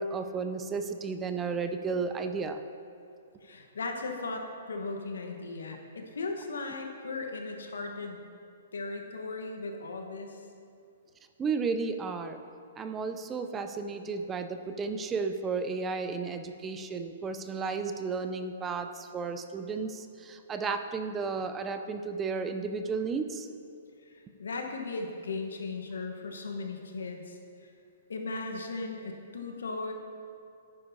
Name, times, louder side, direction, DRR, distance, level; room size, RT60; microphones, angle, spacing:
voice 1, 0.0-2.6 11.4-12.4 12.8-23.5, right 4 dB, 20° right, 8 dB, 0.5 m, -33 dB
voice 2, 3.4-8.2 8.7-10.5 24.0-27.7 28.1-29.9, left 3 dB, 85° left, 3 dB, 1.1 m, -37 dB
10.5 x 9.7 x 2.7 m, 2.5 s
hypercardioid pair, 130°, 0 cm